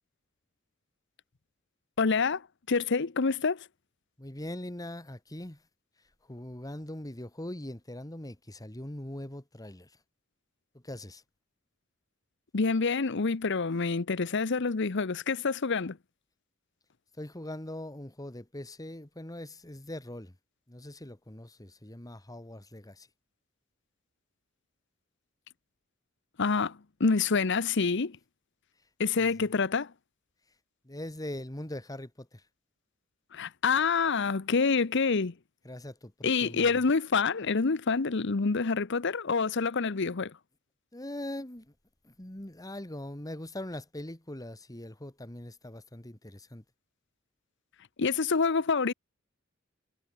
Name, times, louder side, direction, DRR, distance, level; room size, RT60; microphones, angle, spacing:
voice 1, 2.0-2.4 2.7-3.6 12.5-16.0 26.4-28.2 29.0-29.9 33.3-35.3 36.2-40.3 48.0-48.9, left 4 dB, 60° left, 0.8 m, -27 dB
voice 2, 4.2-5.6 6.3-9.9 10.7-11.2 17.2-20.3 20.7-23.1 29.2-29.3 30.8-32.4 35.6-36.8 40.9-41.7 42.0-46.6, left 1 dB, 20° left, 1.9 m, -41 dB
head